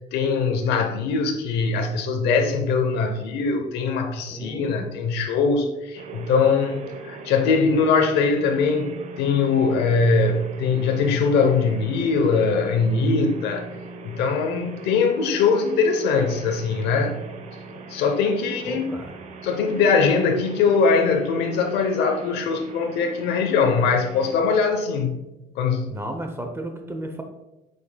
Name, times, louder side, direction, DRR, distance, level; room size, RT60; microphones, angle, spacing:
voice 1, 0.0-13.7 14.0-17.2 17.9-18.9 19.4-25.2 25.6-25.9, left 4 dB, 85° left, 0.7 m, -21 dB
voice 2, 4.3-5.0 18.6-19.1 25.9-27.2, right 1 dB, 15° right, 0.7 m, -33 dB
sound 1, 6.0-24.3, right 3 dB, 45° right, 0.9 m, -40 dB
8.2 x 5.3 x 2.2 m
cardioid pair, 110°, 17 cm